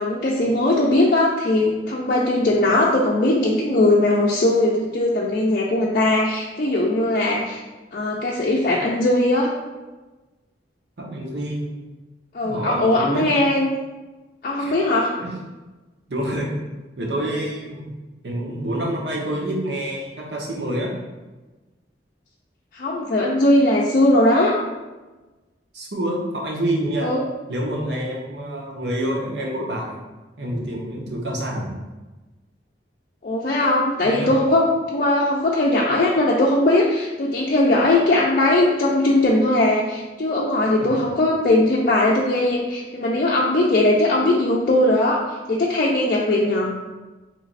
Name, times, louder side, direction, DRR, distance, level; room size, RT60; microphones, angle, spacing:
voice 1, 0.0-7.6 7.9-9.5 12.3-13.7 14.4-15.1 22.7-24.5 27.0-27.2 33.2-45.2 45.5-46.7, left 1 dB, 50° left, -4 dB, 0.4 m, -19 dB
voice 2, 11.0-11.7 12.4-13.3 14.6-14.7 15.2-15.3 16.1-16.5 17.0-17.9 18.2-20.9 25.7-27.1 27.5-30.0 30.4-31.7 34.0-34.3 40.8-41.1, right 1 dB, 70° right, -2 dB, 0.9 m, -27 dB
3.3 x 3.0 x 4.0 m, 1.2 s
head